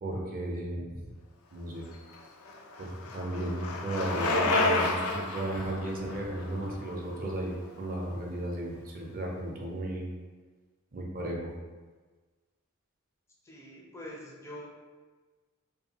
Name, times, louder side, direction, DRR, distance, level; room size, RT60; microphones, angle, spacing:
voice 1, 0.0-1.1 1.5-1.8 2.8-10.1 10.9-11.5, right 1 dB, 40° right, -2 dB, 0.5 m, -34 dB
Bicycle, 1.9-7.9, left 2 dB, 80° left, 0.4 m, -31 dB
voice 2, 13.4-14.7, left 1 dB, 15° left, -3 dB, 0.4 m, -44 dB
2.6 x 2.2 x 2.8 m, 1.3 s
head